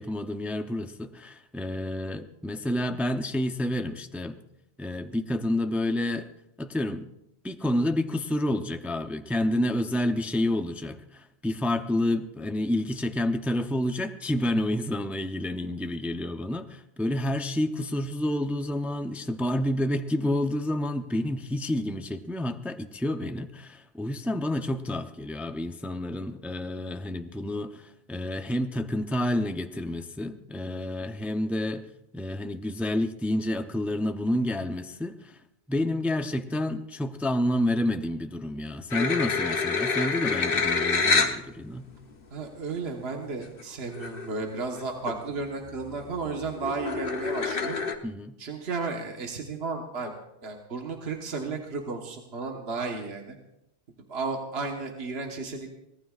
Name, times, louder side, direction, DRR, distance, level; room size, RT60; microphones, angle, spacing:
voice 1, 0.0-4.4 4.8-6.3 6.6-7.1 7.4-35.4 35.7-41.9 48.0-48.4, left 1 dB, ahead, 7 dB, 0.4 m, -29 dB
sound 1, 38.9-41.4 42.1-42.2 43.6-43.7 43.9-44.3 44.7-45.2 45.6-47.9, left 4 dB, 50° left, 1.2 m, -27 dB
voice 2, 42.3-47.8 48.4-50.1 50.4-53.4 54.1-55.7, right 4 dB, 60° right, 1 dB, 1.6 m, -33 dB
24.0 x 18.5 x 2.4 m, 0.85 s
omnidirectional pair, 1.2 m